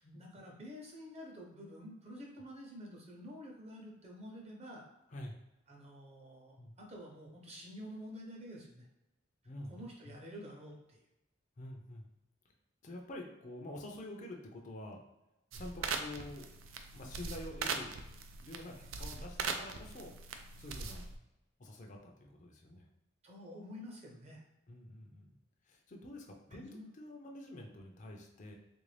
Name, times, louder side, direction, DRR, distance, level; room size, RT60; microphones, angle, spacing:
voice 1, 0.0-4.9 5.7-8.9 9.7-11.0 15.8-16.0 23.2-24.4 26.5-26.9, equal, 35° right, -1 dB, 0.8 m, -49 dB
voice 2, 11.6-12.1 12.8-15.0 15.5-16.5 16.9-18.0 18.4-20.2 20.6-21.1 21.6-22.9 24.7-25.4 25.7-28.5, left 1 dB, 40° left, 1 dB, 0.5 m, -47 dB
sound 1, 15.5-21.2, right 5 dB, 80° right, 0.4 m, -41 dB
3.5 x 2.5 x 3.2 m, 0.94 s
head